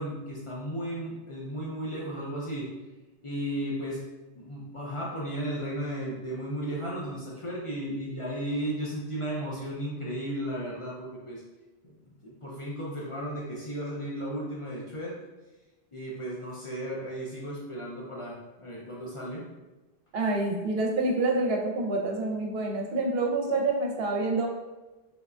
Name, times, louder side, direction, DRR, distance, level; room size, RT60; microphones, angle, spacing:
voice 1, 0.0-2.7 3.2-4.0 4.4-11.4 11.8-12.0 12.2-15.2 15.9-19.5, equal, 45° left, -5 dB, 0.4 m, -34 dB
voice 2, 20.1-24.5, right 2 dB, 75° right, 1 dB, 0.8 m, -27 dB
3.3 x 2.1 x 2.4 m, 1.1 s
omnidirectional pair, 1.1 m